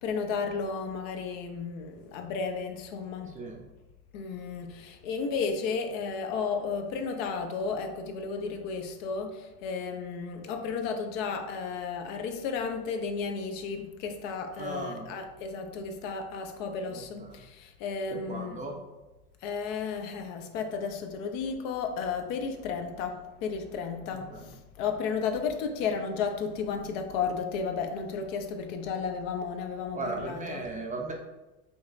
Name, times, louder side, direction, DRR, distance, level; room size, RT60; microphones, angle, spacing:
voice 1, 0.0-3.3 4.1-18.6 19.4-30.6, left 5 dB, 60° left, 5 dB, 0.7 m, -33 dB
voice 2, 14.6-15.1 16.9-17.4 18.1-18.8 24.1-24.5 29.9-31.1, right 3 dB, 20° right, 1 dB, 0.5 m, -37 dB
5.5 x 2.9 x 2.5 m, 1.1 s
hypercardioid pair, 105°, 44 cm